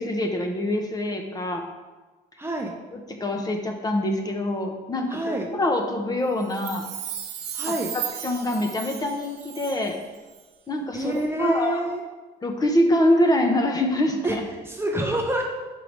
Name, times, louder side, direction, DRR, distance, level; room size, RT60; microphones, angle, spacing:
voice 1, 0.0-1.6 2.9-6.8 7.7-10.0 10.7-11.8 12.4-14.4, left 1 dB, 20° left, 3 dB, 0.7 m, -25 dB
voice 2, 2.4-2.8 5.1-5.5 7.5-7.9 10.9-12.0 14.2-14.4 14.6-15.5, right 1 dB, 15° right, 0 dB, 0.6 m, -27 dB
Chime, 6.4-10.0 10.3-10.4, right 10 dB, 85° right, 0.8 m, -35 dB
4.7 x 4.6 x 5.2 m, 1.3 s
cardioid pair, 110°, 17 cm